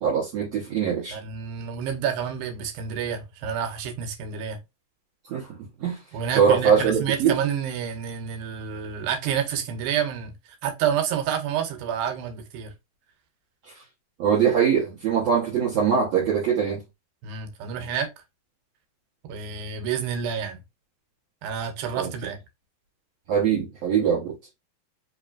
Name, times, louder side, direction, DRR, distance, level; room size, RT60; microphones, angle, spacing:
voice 1, 0.0-1.2 5.3-5.5 5.8-6.0 6.4-7.4 14.2-16.8 22.0-22.1 23.3-24.3, right 7 dB, 65° right, 1.8 m, -22 dB
voice 2, 1.1-4.6 6.1-10.3 10.6-12.7 17.2-18.1 19.3-20.6 21.4-22.4, right 8 dB, 85° right, 2.6 m, -29 dB
5.0 x 3.1 x 2.3 m
omnidirectional pair, 4.0 m